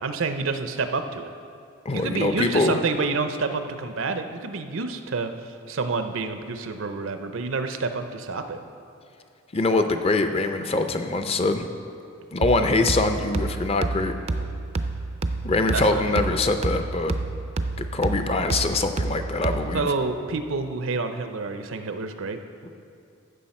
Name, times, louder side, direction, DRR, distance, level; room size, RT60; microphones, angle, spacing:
voice 1, 0.0-1.3 1.9-5.3 5.7-8.6 15.7-16.2 19.7-22.4, right 4 dB, 70° right, 8 dB, 0.6 m, -28 dB
voice 2, 1.8-2.8 9.5-11.7 12.3-14.1 15.4-17.1 17.8-19.9, left 2 dB, 30° left, 7 dB, 0.5 m, -23 dB
sound 1, 12.4-19.9, right 2 dB, 30° right, 0.4 m, -29 dB
15.0 x 6.4 x 4.3 m, 2.5 s
head